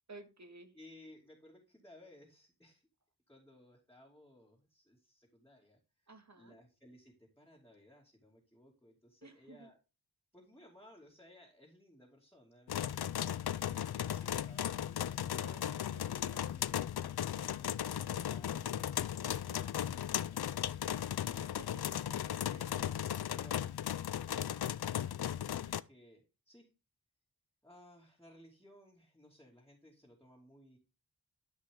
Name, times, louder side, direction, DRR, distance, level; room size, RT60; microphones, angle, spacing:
voice 1, 0.1-0.8 6.1-6.6 9.2-9.7 15.3-16.5 19.5-20.0 20.8-22.7 23.6-23.7 24.4-24.7, right 2 dB, 45° right, 6 dB, 2.0 m, -56 dB
voice 2, 0.7-2.8 3.3-6.1 6.4-9.8 10.3-13.0 25.0-26.7 27.6-30.8, left 1 dB, 5° left, -3 dB, 2.8 m, -60 dB
sound 1, 12.7-25.8, left 10 dB, 85° left, 0.5 m, -36 dB
sound 2, 14.4-25.1, left 5 dB, 60° left, 1.0 m, -56 dB
13.0 x 5.3 x 3.8 m, 0.30 s
wide cardioid pair, 70°, 37 cm